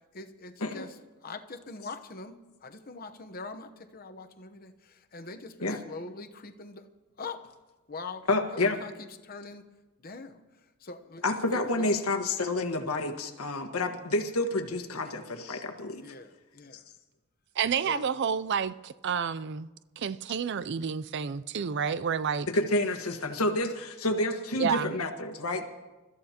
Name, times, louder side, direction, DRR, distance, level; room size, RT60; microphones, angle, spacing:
voice 1, 0.1-0.9 1.2-2.3 2.6-6.9 7.2-7.4 7.9-8.2 8.5-9.6 10.0-10.4 10.8-11.2 11.5-11.8 15.9-16.8 17.8-18.1, left 3 dB, 40° left, 0.9 m, -43 dB
voice 2, 8.3-8.8 11.2-16.0 22.5-25.7, left 2 dB, 80° left, 1.5 m, -29 dB
voice 3, 17.6-19.7 20.0-22.5 24.6-24.9, right 7 dB, 50° right, 0.4 m, -29 dB
29.0 x 14.0 x 2.9 m
head